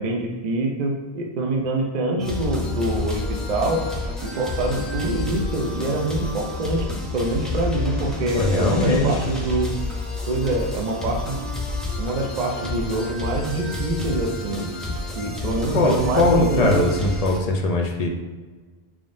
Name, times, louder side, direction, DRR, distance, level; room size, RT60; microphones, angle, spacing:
voice 1, 0.0-3.8 4.2-6.9 7.1-9.7 10.3-11.5 12.0-14.7 15.2-16.9, right 2 dB, 50° right, 2 dB, 0.6 m, -25 dB
sound 1, 2.2-17.4, left 2 dB, ahead, 0.6 m, -29 dB
voice 2, 8.3-9.1 15.7-18.1, left 2 dB, 50° left, 2 dB, 0.5 m, -21 dB
4.8 x 3.6 x 2.5 m, 1.4 s
omnidirectional pair, 1.1 m